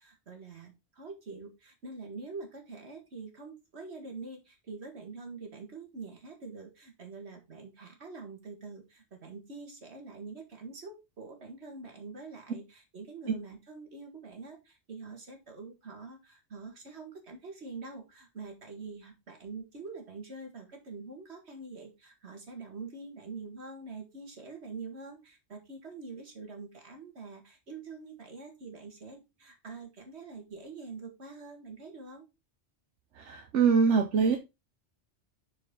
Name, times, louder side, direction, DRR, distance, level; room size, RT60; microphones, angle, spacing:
voice 1, 0.0-32.3, right 4 dB, 65° right, 2.1 m, -45 dB
voice 2, 33.2-34.4, right 5 dB, 90° right, 1.2 m, -24 dB
8.0 x 4.8 x 3.8 m
omnidirectional pair, 1.2 m